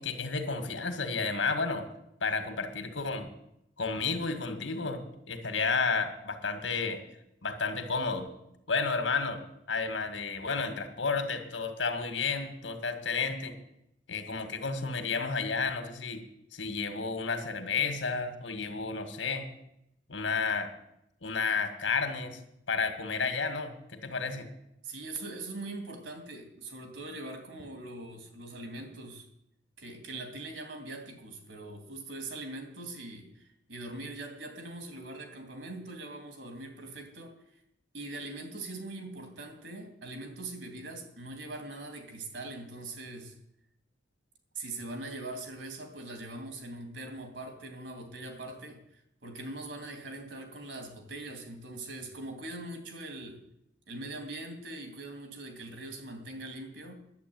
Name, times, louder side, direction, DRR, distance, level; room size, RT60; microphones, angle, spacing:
voice 1, 0.0-1.9 2.2-3.3 3.8-7.0 7.4-8.3 8.7-9.4 9.7-13.5 14.1-16.2 16.5-19.5 20.1-20.7 21.2-22.4 22.7-23.7 24.0-24.5, left 4 dB, 90° left, 8 dB, 1.9 m, -31 dB
voice 2, 24.8-29.3 29.8-37.6 37.9-43.3 44.5-53.4 53.9-56.9, right 2 dB, 75° right, 4 dB, 2.9 m, -42 dB
11.0 x 8.0 x 9.3 m, 0.78 s
head